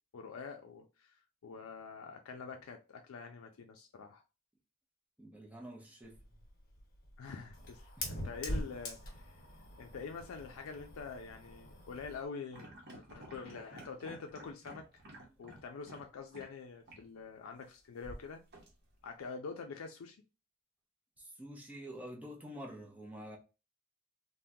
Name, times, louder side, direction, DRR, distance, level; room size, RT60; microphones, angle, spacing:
voice 1, 0.1-1.2 1.4-4.2 7.2-9.4 9.8-14.8 15.4-18.4 19.0-20.2, left 5 dB, 90° left, 0.4 m, -46 dB
voice 2, 5.2-6.2 8.0-8.2 21.2-23.4, equal, 5° right, 0.6 m, -48 dB
Fire, 6.0-12.2, left 1 dB, 45° left, 1.2 m, -44 dB
sound 1, 12.5-16.1 16.3-16.5 16.9-17.1 18.0-19.1, right 1 dB, 50° right, 0.9 m, -52 dB
3.5 x 2.1 x 2.7 m
head